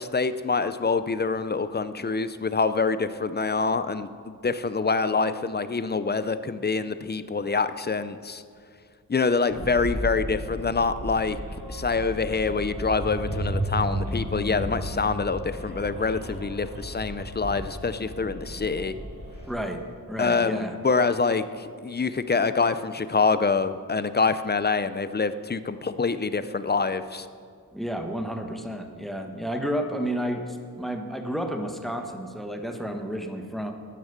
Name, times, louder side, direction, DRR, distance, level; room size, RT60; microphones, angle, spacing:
voice 1, 0.0-8.4 9.1-11.4 11.7-18.9 20.2-27.3, left 4 dB, 25° left, 12 dB, 0.5 m, -26 dB
sound 1, 9.5-19.5, right 1 dB, 45° right, 4.5 m, -33 dB
voice 2, 19.5-20.8 27.7-33.7, equal, ahead, 5 dB, 1.1 m, -31 dB
13.5 x 11.0 x 6.6 m, 2.2 s
wide cardioid pair, 140°, 38 cm